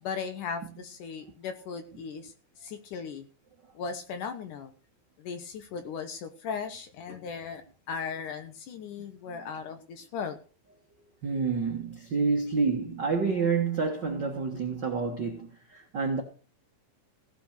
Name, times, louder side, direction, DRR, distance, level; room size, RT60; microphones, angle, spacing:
voice 1, 0.0-2.3 2.6-3.3 3.7-4.7 5.2-10.4, left 6 dB, 70° left, 2.3 m, -37 dB
voice 2, 11.2-16.2, right 4 dB, 70° right, 1.0 m, -28 dB
16.5 x 6.0 x 6.5 m
omnidirectional pair, 4.4 m